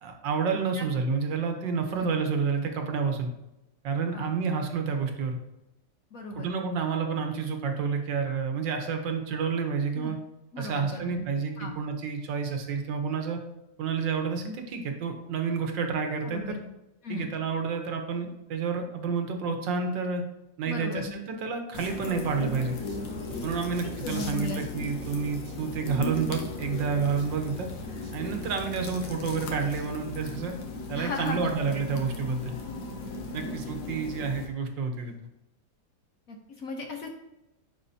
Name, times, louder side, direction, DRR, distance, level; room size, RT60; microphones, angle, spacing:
voice 1, 0.0-3.3 3.8-5.4 6.4-10.2 10.6-13.4 13.8-16.6 17.1-20.2 20.6-22.8 23.4-27.7 28.1-30.5 30.9-32.5 33.3-35.1, right 5 dB, 75° right, 4 dB, 1.6 m, -29 dB
voice 2, 6.1-6.5 10.0-10.1 10.5-11.2 11.6-11.8 16.2-16.6 17.0-17.3 20.7-21.1 23.6-24.6 30.9-31.5 33.3-33.7 34.0-34.1 36.3-37.1, left 3 dB, 55° left, 2 dB, 1.1 m, -36 dB
sound 1, 21.7-34.5, left 3 dB, 80° left, 1.8 m, -37 dB
sound 2, 22.8-30.2, right 2 dB, 45° right, 0.9 m, -47 dB
10.0 x 4.8 x 2.7 m, 0.93 s
omnidirectional pair, 2.1 m